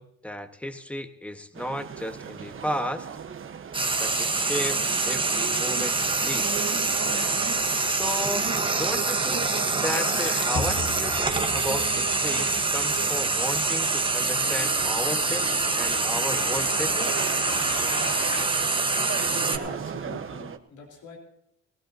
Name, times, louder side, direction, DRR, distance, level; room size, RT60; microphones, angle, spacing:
voice 1, 0.0-3.1 4.0-6.5 7.8-8.5 8.7-9.5 9.7-17.1, equal, 5° left, 7 dB, 1.4 m, -34 dB
sound 1, 1.5-20.6, right 7 dB, 45° right, 1.2 m, -37 dB
Frying (food), 3.7-19.6, right 3 dB, 15° right, 1.3 m, -25 dB
sound 2, 7.0-18.4, left 4 dB, 45° left, 1.6 m, -38 dB
voice 2, 19.5-21.2, left 5 dB, 80° left, 1 dB, 3.9 m, -43 dB
20.0 x 18.0 x 2.8 m, 0.76 s
cardioid pair, 90°, 30 cm